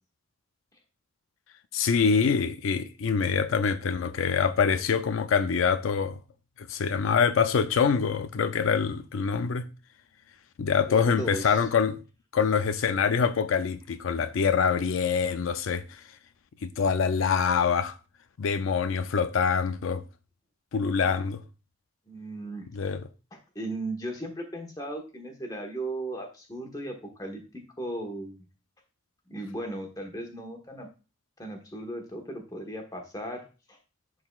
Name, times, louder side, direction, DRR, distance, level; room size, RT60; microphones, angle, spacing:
voice 1, 1.7-6.2 6.6-9.6 10.6-12.0 12.3-16.0 16.6-17.9 18.4-20.0 20.7-21.4 22.7-23.0, left 6 dB, 80° left, 0.4 m, -25 dB
voice 2, 10.8-11.6 22.1-22.7 23.3-27.4 27.8-28.5 29.3-30.9 31.4-33.8, right 1 dB, 20° left, 1.2 m, -36 dB
11.0 x 3.9 x 2.3 m
head